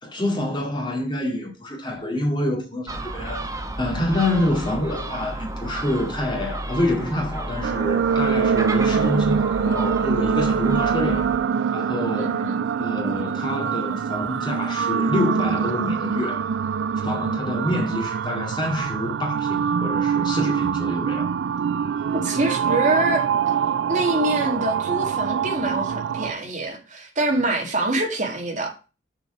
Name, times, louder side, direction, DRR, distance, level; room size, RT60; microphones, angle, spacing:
voice 1, 0.0-3.5 3.8-11.3 11.7-12.4 12.8-16.5 17.0-21.3, left 1 dB, 25° left, 2.2 m, -27 dB
Gull seagull, 2.9-11.4, right 2 dB, 20° right, 1.1 m, -32 dB
sound 1, 7.6-26.3, right 7 dB, 80° right, 0.3 m, -24 dB
voice 2, 12.2-12.6 22.1-23.3 23.9-28.7, right 2 dB, 45° right, 2.2 m, -25 dB
6.6 x 4.6 x 6.1 m
head